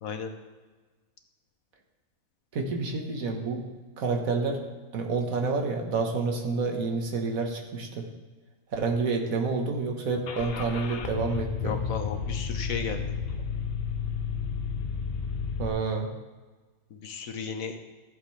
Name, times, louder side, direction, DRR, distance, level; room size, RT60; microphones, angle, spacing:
voice 1, 0.0-0.3 11.6-13.1 16.9-17.7, left 6 dB, 70° left, 6 dB, 1.3 m, -34 dB
voice 2, 2.5-3.6 4.0-4.6 4.9-8.1 8.7-11.8 15.6-16.1, right 4 dB, 70° right, 2 dB, 1.6 m, -29 dB
Car / Engine starting, 10.3-15.7, left 6 dB, 50° left, 0.8 m, -32 dB
14.0 x 7.3 x 3.2 m, 1.3 s
omnidirectional pair, 1.5 m